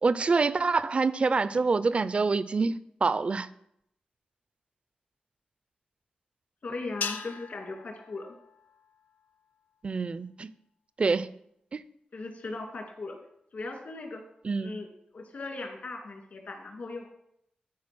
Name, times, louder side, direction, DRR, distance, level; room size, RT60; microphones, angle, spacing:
voice 1, 0.0-3.5 9.8-10.5 11.0-11.3 11.7-11.8 14.4-14.7, right 4 dB, 40° right, 16 dB, 0.4 m, -26 dB
voice 2, 6.6-8.3 12.1-13.2 13.5-14.2 14.6-17.1, left 3 dB, 60° left, 2 dB, 2.3 m, -38 dB
sound 1, 7.0-9.4, left 6 dB, 75° left, 0.6 m, -40 dB
13.0 x 4.5 x 6.0 m, 0.75 s
wide cardioid pair, 140°, 3 cm